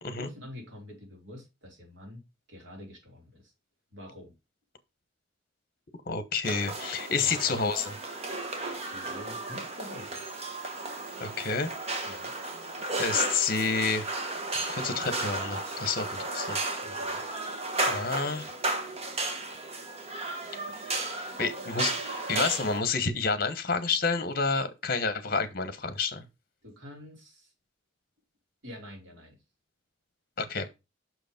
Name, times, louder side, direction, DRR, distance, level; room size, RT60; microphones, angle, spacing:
voice 1, 0.2-3.5 3.9-4.3 7.1-7.5 8.3-10.2 12.0-12.3 16.8-17.2 26.6-27.5 28.6-29.4, left 1 dB, 85° right, 3.2 m, -47 dB
voice 2, 6.1-8.0 11.2-11.7 12.0-12.2 13.0-14.1 14.7-16.6 17.9-18.5 21.4-26.3 30.4-30.7, left 4 dB, 50° left, 1.0 m, -29 dB
sound 1, 6.4-22.8, right 2 dB, 35° right, 1.2 m, -34 dB
6.1 x 4.8 x 5.1 m
head